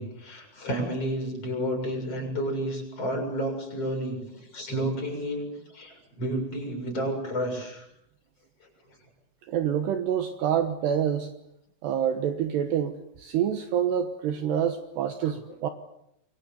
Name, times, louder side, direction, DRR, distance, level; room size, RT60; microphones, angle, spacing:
voice 1, 0.0-7.9 15.2-15.3, right 1 dB, 30° left, 2 dB, 7.7 m, -31 dB
voice 2, 9.5-11.3 11.8-15.7, right 9 dB, 70° right, 7 dB, 3.0 m, -27 dB
29.0 x 24.0 x 7.0 m, 0.78 s
omnidirectional pair, 5.7 m